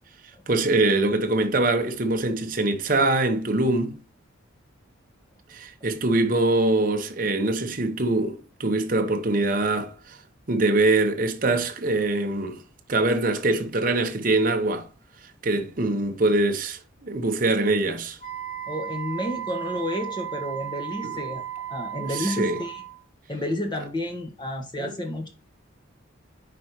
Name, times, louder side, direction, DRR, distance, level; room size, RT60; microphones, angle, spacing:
voice 1, 0.5-4.0 5.5-10.2 10.5-12.6 12.9-14.9 15.4-18.2 21.0-21.2 22.0-22.6 24.8-24.9, right 2 dB, 40° right, 0.8 m, -23 dB
Wind instrument woodwind instrument, 18.2-23.0, right 10 dB, 40° left, 1.3 m, -35 dB
voice 2, 18.7-21.4 21.7-22.8 23.3-25.3, left 1 dB, 20° left, 1.3 m, -30 dB
5.2 x 4.4 x 4.3 m
head